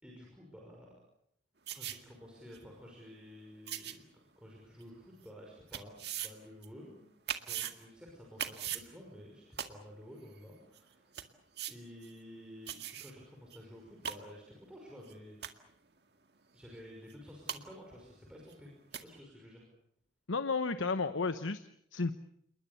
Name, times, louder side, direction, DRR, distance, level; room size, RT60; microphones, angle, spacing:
voice 1, 0.0-1.0 1.7-7.0 7.4-11.2 11.7-15.4 16.5-19.7, equal, 5° right, -2 dB, 5.7 m, -52 dB
sound 1, 1.7-2.0 2.5-2.6 3.7-3.9 4.8-4.9 5.7-6.3 6.6-6.7 7.3-7.7 8.4-8.8 9.6-9.7 10.4-10.5 10.8-10.9 11.1-11.2 11.6-11.7 12.0-12.1 12.7-13.1 13.5-13.6 13.9-14.1 15.1-15.2 15.4-15.7 17.1-17.2 17.5-17.6 18.5-18.6 18.9-19.0, right 9 dB, 55° right, 2.0 m, -38 dB
voice 2, 20.3-22.1, left 4 dB, 90° left, 10 dB, 1.0 m, -33 dB
28.5 x 21.5 x 7.1 m, 0.71 s
head